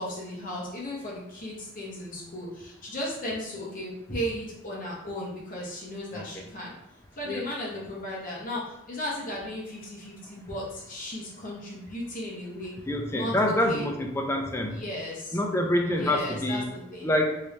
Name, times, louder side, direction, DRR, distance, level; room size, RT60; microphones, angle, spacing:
voice 1, 0.0-6.7 7.1-12.7 13.1-13.9 14.7-15.4 15.9-17.1, left 1 dB, 40° left, -5 dB, 1.1 m, -36 dB
voice 2, 12.9-14.8 15.3-16.7 17.0-17.4, left 1 dB, 10° left, 2 dB, 0.3 m, -26 dB
3.1 x 2.6 x 3.2 m, 0.88 s
head